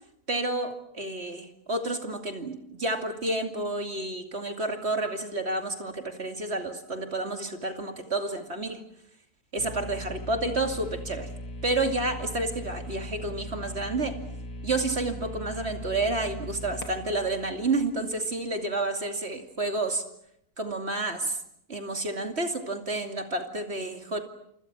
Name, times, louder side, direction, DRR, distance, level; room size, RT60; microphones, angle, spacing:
voice 1, 0.3-8.8 9.5-11.3 11.6-14.2 14.6-20.0 20.6-21.4 21.7-24.2, right 2 dB, 45° right, 5 dB, 2.9 m, -30 dB
sound 1, 9.6-18.5, left 1 dB, 75° left, 3.0 m, -39 dB
28.0 x 26.0 x 6.2 m, 0.74 s
omnidirectional pair, 1.6 m